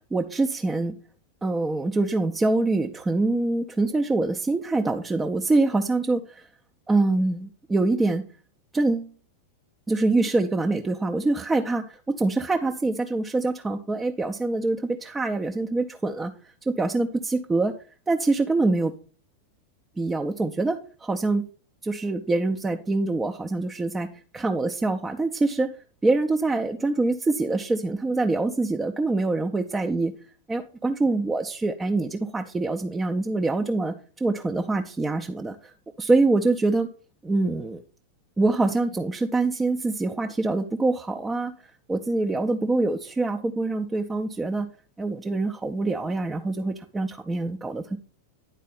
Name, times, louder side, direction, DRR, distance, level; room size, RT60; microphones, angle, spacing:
voice 1, 0.1-0.9 1.4-6.5 6.9-8.2 8.7-9.1 9.9-16.3 16.7-17.7 18.1-18.9 20.0-21.5 21.8-24.1 24.3-25.8 26.0-30.1 30.5-35.6 36.0-36.9 37.2-37.8 38.4-41.5 41.9-44.7 45.0-48.0, right 2 dB, 10° right, 2 dB, 0.6 m, -25 dB
10.0 x 4.1 x 5.3 m, 0.39 s
figure-of-eight pair, 90°, 0 cm